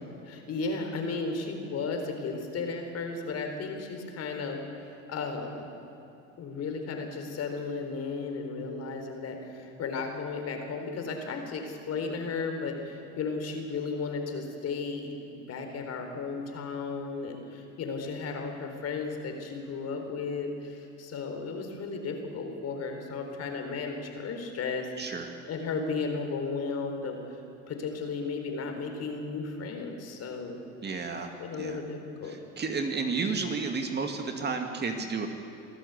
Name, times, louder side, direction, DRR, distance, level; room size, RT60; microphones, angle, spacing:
voice 1, 0.2-5.7 6.4-27.2 27.7-30.6 31.4-32.4, left 4 dB, 45° left, 5 dB, 4.1 m, -34 dB
voice 2, 25.0-25.3 30.8-31.3 31.6-31.8 32.2-35.3, right 4 dB, 30° right, 4 dB, 2.3 m, -32 dB
25.0 x 14.0 x 8.3 m, 2.8 s
supercardioid pair, 100°, 35 cm